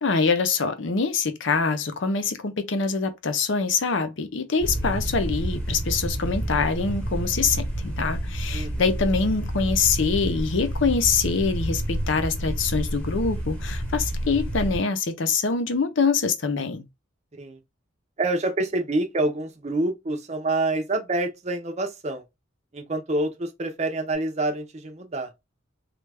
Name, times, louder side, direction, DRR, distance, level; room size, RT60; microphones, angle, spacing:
voice 1, 0.0-16.8, left 4 dB, 65° left, 0.6 m, -24 dB
sound 1, 4.6-14.8, right 1 dB, 5° left, 1.0 m, -29 dB
voice 2, 18.2-22.2 22.7-25.3, right 2 dB, 35° right, 0.6 m, -27 dB
3.2 x 2.3 x 3.3 m
head